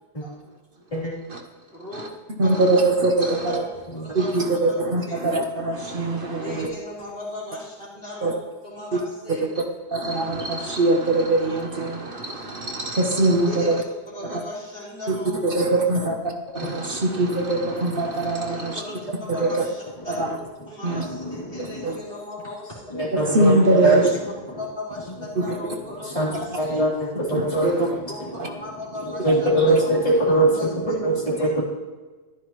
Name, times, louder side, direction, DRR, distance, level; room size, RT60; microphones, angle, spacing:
voice 1, 1.7-2.1 2.4-2.8 3.2-3.7 4.0-4.7 5.1-5.2 6.4-9.5 13.5-13.7 14.1-15.7 18.5-20.3 20.7-23.0 23.7-23.9 24.6-26.8 28.1-30.9 31.4-31.6, left 2 dB, 60° left, -7 dB, 4.0 m, -37 dB
voice 2, 2.4-3.6 4.1-6.7 8.2-8.3 8.9-9.0 9.3-9.6 9.9-13.8 14.3-14.4 15.1-15.2 15.4-18.8 19.3-19.7 20.2-20.4 20.8-21.0 21.6-22.0 23.3-24.1 25.4-25.7 27.3-27.9 29.7-29.8, right 2 dB, 55° right, 3 dB, 1.2 m, -22 dB
voice 3, 16.6-17.0 20.2-20.3 20.9-21.9 22.9-24.0 24.5-24.6 26.0-28.3 29.0-31.6, right 1 dB, 30° left, -7 dB, 3.6 m, -23 dB
14.0 x 12.0 x 3.2 m, 1.3 s
omnidirectional pair, 1.1 m